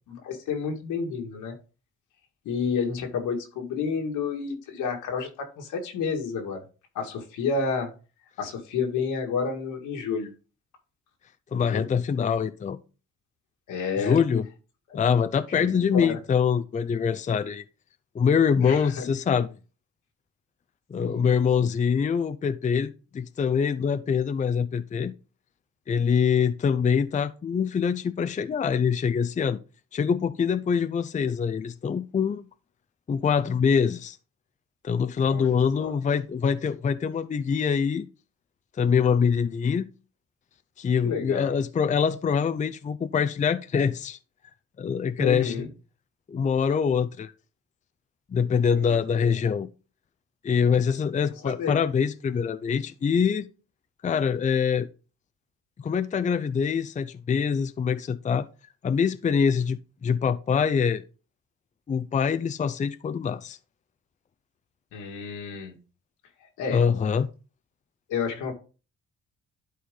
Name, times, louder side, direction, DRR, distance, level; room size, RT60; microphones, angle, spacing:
voice 1, 0.1-1.6 2.5-6.6 6.9-7.9 8.4-10.3 11.5-11.9 13.7-14.2 14.9-15.0 15.5-16.2 18.6-19.1 21.0-21.3 35.3-36.0 41.0-41.6 45.2-45.7 48.7-49.4 51.4-51.8 64.9-65.7 66.6-66.9 68.1-68.5, left 5 dB, 85° left, 2.1 m, -30 dB
voice 2, 11.5-12.8 14.0-14.5 14.9-17.6 18.1-19.5 20.9-25.1 25.9-29.6 29.9-32.5 33.1-34.2 34.8-38.1 38.8-39.9 40.8-44.2 44.8-45.6 46.3-47.3 48.3-49.7 50.4-53.5 54.0-54.9 55.8-58.5 58.8-61.0 61.9-63.6 66.7-67.3, left 6 dB, 25° left, 0.5 m, -24 dB
11.0 x 4.2 x 3.8 m
cardioid pair, 90°, 30 cm